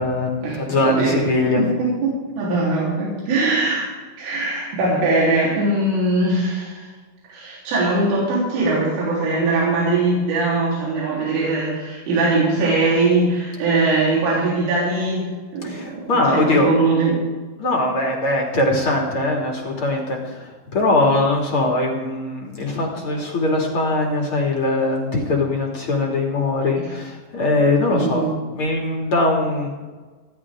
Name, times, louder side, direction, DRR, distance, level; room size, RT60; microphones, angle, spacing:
voice 1, 0.0-1.6 15.6-16.7 17.6-28.3 28.5-29.7, left 2 dB, 40° left, 0 dB, 2.2 m, -21 dB
voice 2, 0.8-1.3 1.6-3.9 4.2-6.9 7.3-15.8 16.1-17.2 26.8-26.9 27.9-28.4, right 2 dB, 90° right, -6 dB, 6.2 m, -21 dB
28.5 x 11.0 x 3.7 m, 1.3 s
omnidirectional pair, 5.6 m